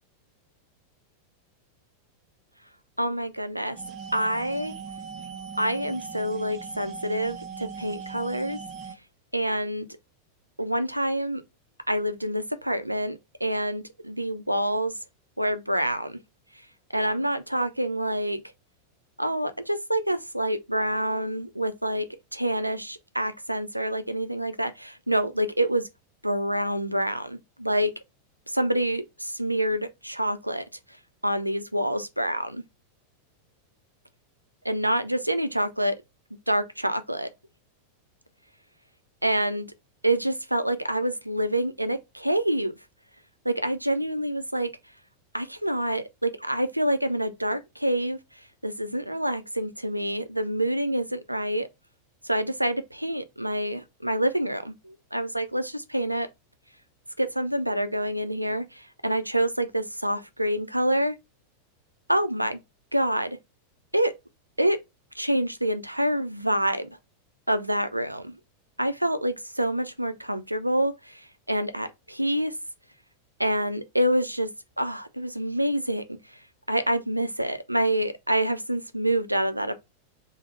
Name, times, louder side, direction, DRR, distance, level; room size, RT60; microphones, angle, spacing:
voice 1, 3.0-3.8 4.1-4.7 5.6-8.6 9.3-9.9 10.6-11.4 11.9-14.9 15.4-16.2 16.9-18.4 19.2-22.0 22.3-25.8 26.2-27.9 28.5-30.6 31.2-32.6 34.6-36.0 36.5-37.3 39.2-39.7 40.0-42.7 43.5-44.7 45.3-48.2 48.6-51.7 52.2-56.3 57.2-61.2 62.1-62.6 62.9-63.4 63.9-64.1 64.6-64.8 65.2-66.9 67.5-68.3 68.8-71.2 71.5-72.5 73.4-74.5 74.8-76.0 76.7-79.7, right 1 dB, 85° right, 0.4 m, -27 dB
sound 1, 3.8-9.0, right 6 dB, 35° right, 0.5 m, -39 dB
3.4 x 2.0 x 3.7 m
figure-of-eight pair, 90°, 0 cm